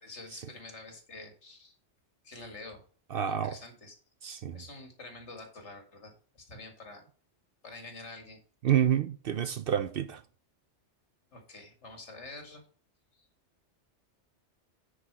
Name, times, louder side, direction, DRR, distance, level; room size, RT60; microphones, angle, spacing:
voice 1, 0.0-1.8 2.2-2.8 3.2-3.9 4.5-7.0 7.6-8.4 11.3-12.6 13.1-13.3, left 2 dB, 70° left, 2.3 m, -47 dB
voice 2, 3.1-3.6 4.2-4.6 8.6-10.2, right 9 dB, 60° right, 0.7 m, -28 dB
9.9 x 5.0 x 4.7 m
omnidirectional pair, 1.2 m